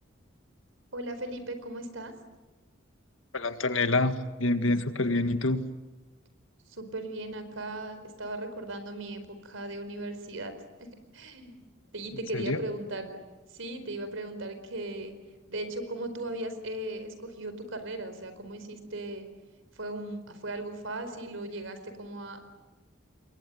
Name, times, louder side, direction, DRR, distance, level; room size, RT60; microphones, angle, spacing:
voice 1, 0.9-2.1 6.7-10.5 10.8-11.6 11.9-13.2 13.5-15.1 15.5-19.3 19.7-22.4, right 2 dB, 80° right, 10 dB, 4.6 m, -37 dB
voice 2, 3.3-4.1 4.4-5.7 12.3-12.6, left 2 dB, 75° left, 9 dB, 1.9 m, -26 dB
28.5 x 22.0 x 9.3 m, 1.1 s
head